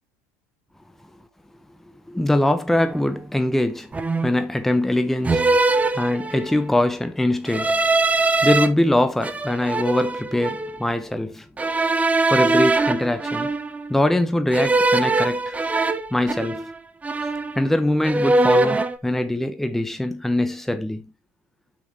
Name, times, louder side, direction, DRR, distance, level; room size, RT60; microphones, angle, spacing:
voice 1, 2.1-5.5 5.9-7.8 8.2-11.5 12.3-13.5 13.9-15.6 16.1-16.6 17.6-21.1, left 1 dB, 5° left, 0.9 m, -22 dB
sound 1, 2.8-3.1 3.9-4.5 5.2-6.7 7.5-8.7 9.2-10.8 11.6-13.9 14.5-16.8 17.0-17.8 18.0-19.0, right 2 dB, 15° right, 1.2 m, -22 dB
8.8 x 6.1 x 3.1 m
hypercardioid pair, 90°, 8 cm